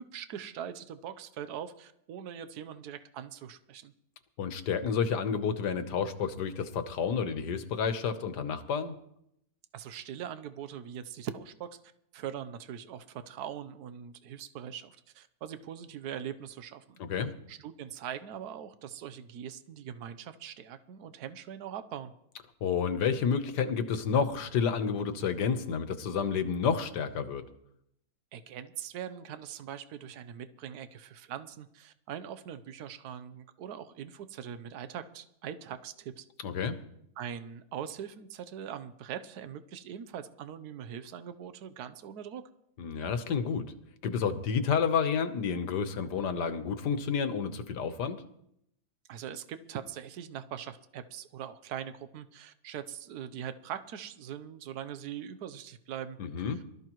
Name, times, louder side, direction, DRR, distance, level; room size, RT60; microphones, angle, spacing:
voice 1, 0.1-3.9 9.7-11.7 12.1-22.1 28.3-36.2 37.2-42.4 49.1-56.2 56.5-56.6, right 9 dB, 75° right, 11 dB, 1.3 m, -42 dB
voice 2, 4.4-9.0 17.0-17.3 22.6-27.4 36.4-36.7 42.8-43.7 44.0-48.2 56.2-56.6, left 6 dB, 85° left, 10 dB, 1.7 m, -30 dB
23.5 x 14.0 x 3.1 m, 0.77 s
omnidirectional pair, 1.7 m